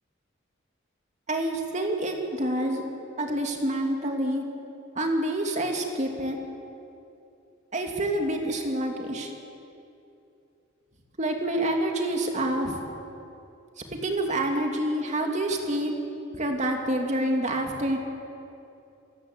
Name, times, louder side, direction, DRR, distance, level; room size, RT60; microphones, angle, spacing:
voice 1, 1.3-2.8 3.2-4.4 5.0-6.4 7.7-9.3 11.2-12.8 14.0-15.9 16.4-18.0, right 1 dB, 35° right, 2 dB, 2.6 m, -27 dB
28.5 x 14.5 x 8.0 m, 2.7 s
head